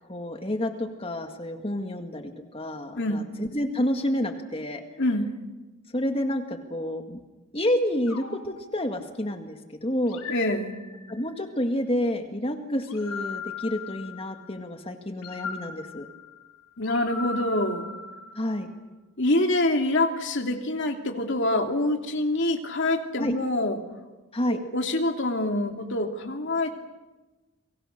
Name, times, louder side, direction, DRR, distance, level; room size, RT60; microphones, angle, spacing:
voice 1, 0.1-4.8 5.9-7.2 7.5-10.2 11.1-16.1 18.4-18.7 23.2-23.3 24.3-24.6, left 1 dB, 25° left, 6 dB, 1.9 m, -29 dB
voice 2, 5.0-5.3 10.3-10.7 16.8-17.9 19.2-23.8 24.5-26.8, left 1 dB, 55° left, 4 dB, 2.8 m, -26 dB
sound 1, 8.1-9.4 10.1-11.3 12.8-14.6 15.2-18.7, left 4 dB, 80° left, 5.1 m, -39 dB
30.0 x 24.0 x 6.7 m, 1.2 s
head